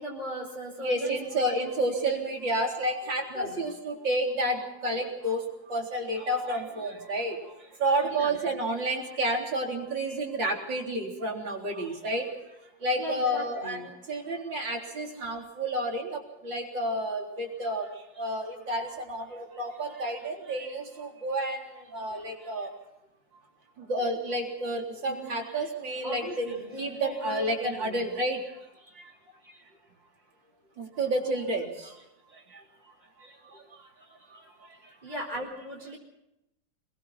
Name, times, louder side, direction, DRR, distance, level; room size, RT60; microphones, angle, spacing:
voice 1, 0.0-1.2 1.4-1.7 3.3-3.6 8.0-8.4 12.9-13.9 17.7-17.8 25.1-25.2 26.0-28.0 35.0-36.0, equal, 20° right, -3 dB, 5.2 m, -38 dB
voice 2, 0.8-12.6 12.8-13.8 14.1-22.7 23.8-28.6 28.9-29.1 30.8-32.0 32.3-32.6 33.2-33.9 34.3-34.9, right 1 dB, 70° right, 1 dB, 4.5 m, -31 dB
28.0 x 22.5 x 4.3 m, 0.85 s
omnidirectional pair, 2.1 m